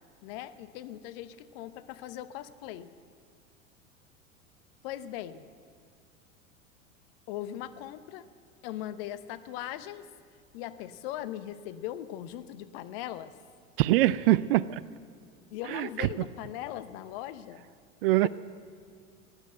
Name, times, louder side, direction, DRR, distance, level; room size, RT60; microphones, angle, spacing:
voice 1, 0.2-2.9 4.8-5.5 7.3-8.3 8.6-10.1 10.5-13.3 15.5-17.7, left 12 dB, 45° left, 13 dB, 0.9 m, -39 dB
voice 2, 13.8-14.8 15.7-16.1 18.0-18.3, right 16 dB, 45° right, 19 dB, 0.4 m, -23 dB
16.5 x 11.0 x 7.9 m, 2.1 s
figure-of-eight pair, 85°, 40 cm